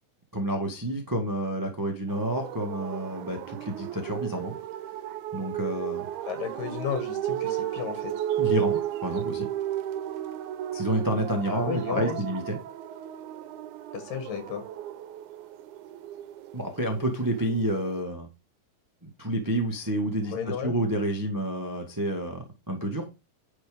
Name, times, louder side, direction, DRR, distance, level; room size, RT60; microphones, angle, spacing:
voice 1, 0.3-4.5 5.3-6.1 8.4-9.5 10.7-12.6 16.5-18.3 19.0-20.3 20.6-23.1, right 1 dB, 15° right, 3 dB, 0.8 m, -29 dB
sound 1, 2.1-18.0, right 12 dB, 75° right, 2.1 m, -34 dB
voice 2, 6.3-8.1 11.5-12.2 13.9-14.7 20.2-20.8, left 8 dB, 90° left, 7 dB, 3.6 m, -33 dB
10.5 x 5.1 x 5.1 m, 0.27 s
omnidirectional pair, 3.8 m